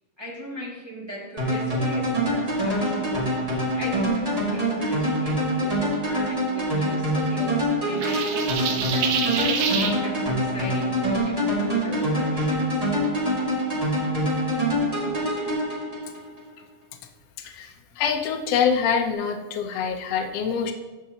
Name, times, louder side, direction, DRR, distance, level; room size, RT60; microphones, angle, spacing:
voice 1, 0.2-3.1 3.7-12.8, equal, 10° right, -6 dB, 1.3 m, -37 dB
sound 1, 1.4-16.4, equal, 30° right, 0.7 m, -25 dB
sound 2, 8.0-10.0, right 7 dB, 80° right, 2.3 m, -27 dB
voice 2, 17.4-20.7, left 7 dB, 90° left, 4 dB, 1.4 m, -25 dB
13.5 x 6.1 x 2.8 m, 1.2 s
omnidirectional pair, 3.9 m